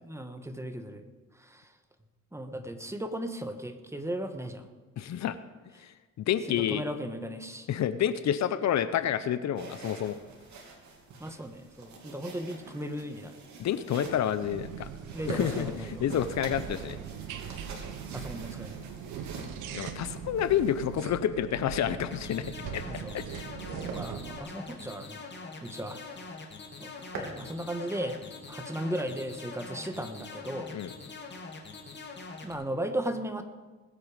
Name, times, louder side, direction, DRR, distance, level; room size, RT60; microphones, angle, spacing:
voice 1, 0.0-1.1 1.3-1.7 2.3-4.7 6.5-7.7 11.2-13.4 15.1-16.0 18.1-18.9 22.9-23.2 23.8-25.2 25.6-26.0 26.8-28.2 28.5-30.7 32.4-33.4, right 1 dB, 10° right, 7 dB, 1.5 m, -36 dB
voice 2, 5.0-5.4 5.8-6.8 7.7-10.2 13.6-14.9 15.3-17.0 19.7-22.8 23.1-23.5 30.7-30.9, left 10 dB, 65° left, 13 dB, 0.8 m, -29 dB
sound 1, 9.5-21.2 22.5-23.5 23.9-24.1 24.5-24.7 25.1-25.2 25.5-25.6 25.9-26.3 26.7-27.4, right 3 dB, 70° right, 2.9 m, -45 dB
sound 2, 14.4-24.4, right 8 dB, 85° right, 1.2 m, -41 dB
sound 3, 22.1-32.5, left 4 dB, 35° left, 2.6 m, -44 dB
20.5 x 8.5 x 5.1 m, 1.3 s
cardioid pair, 90°, 30 cm